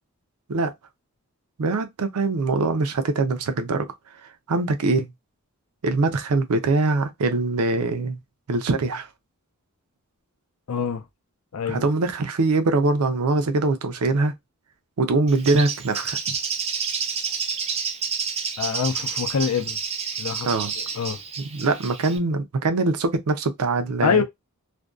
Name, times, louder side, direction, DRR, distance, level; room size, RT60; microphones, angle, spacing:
voice 1, 1.6-5.1 5.8-8.2 8.5-9.1 11.7-14.3 15.0-16.3 20.4-20.7 21.5-24.2, right 3 dB, 85° right, 0.5 m, -23 dB
voice 2, 10.7-11.0 11.5-11.9 18.6-19.8 20.2-20.5 20.9-21.2 24.0-24.2, left 6 dB, 85° left, 0.5 m, -24 dB
Bird, 15.3-22.2, right 6 dB, 30° right, 0.4 m, -29 dB
2.5 x 2.2 x 2.3 m
head